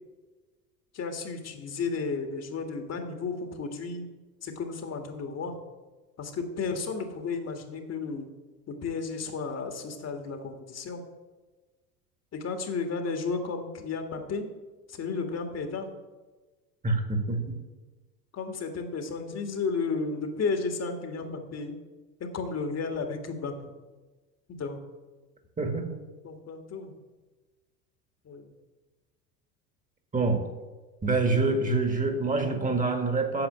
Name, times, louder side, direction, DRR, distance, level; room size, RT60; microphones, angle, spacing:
voice 1, 0.9-4.1 4.4-5.6 6.2-8.3 8.7-11.0 12.3-14.5 14.9-15.9 18.3-21.8 22.2-23.7 24.5-24.8 26.2-26.9 28.3-28.5, left 4 dB, 30° left, 6 dB, 1.7 m, -33 dB
voice 2, 16.8-17.6 25.6-25.9 30.1-30.4 31.0-33.5, right 3 dB, 15° right, 5 dB, 1.9 m, -26 dB
9.0 x 7.1 x 8.8 m, 1.3 s
figure-of-eight pair, 75°, 47 cm